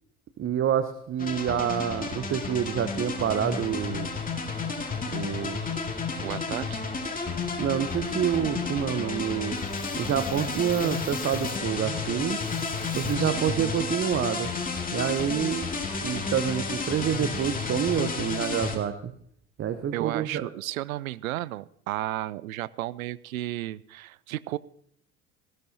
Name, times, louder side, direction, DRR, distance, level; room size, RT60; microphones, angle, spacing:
voice 1, 0.4-4.1 5.1-5.7 7.6-9.6 10.0-12.4 12.9-14.5 14.9-15.7 16.0-19.1 19.6-20.5, right 9 dB, 30° right, 10 dB, 0.9 m, -27 dB
sound 1, 1.2-18.8, left 4 dB, 20° left, 2.3 m, -32 dB
voice 2, 6.2-6.8 13.2-13.6 19.9-24.6, right 16 dB, 75° right, 19 dB, 0.5 m, -33 dB
sound 2, 9.5-11.6 12.3-13.1, left 8 dB, 80° left, 1.5 m, -50 dB
18.5 x 15.5 x 2.8 m, 0.67 s
figure-of-eight pair, 65°, 43 cm